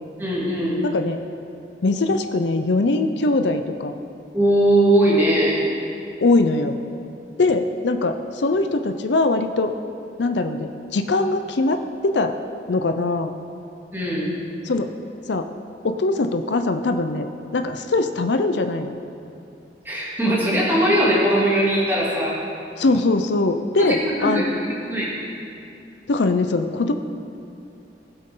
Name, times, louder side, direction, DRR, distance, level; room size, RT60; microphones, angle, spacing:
voice 1, 0.2-0.8 4.3-5.6 13.9-14.3 19.8-22.3 23.8-24.5 24.9-25.1, right 1 dB, 10° right, -7 dB, 2.7 m, -20 dB
voice 2, 0.8-1.2 1.8-3.9 6.2-6.8 7.4-9.7 10.2-12.3 12.7-13.3 14.6-14.9 15.3-15.5 15.8-19.0 22.8-24.5 26.1-26.9, left 2 dB, 70° left, 7 dB, 0.5 m, -21 dB
19.5 x 8.0 x 3.8 m, 2.6 s
head